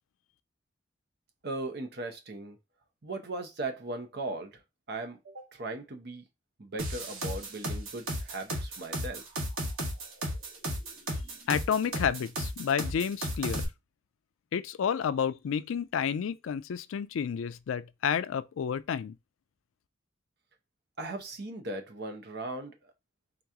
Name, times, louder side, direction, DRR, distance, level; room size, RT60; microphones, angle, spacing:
voice 1, 1.4-2.6 3.0-4.6 4.9-6.2 6.6-9.2 21.0-22.7, right 2 dB, 55° right, 0.8 m, -38 dB
sound 1, 6.8-13.6, equal, 85° right, 1.3 m, -33 dB
voice 2, 11.5-13.7 14.5-19.1, left 7 dB, 80° left, 0.3 m, -30 dB
3.9 x 2.9 x 3.5 m
head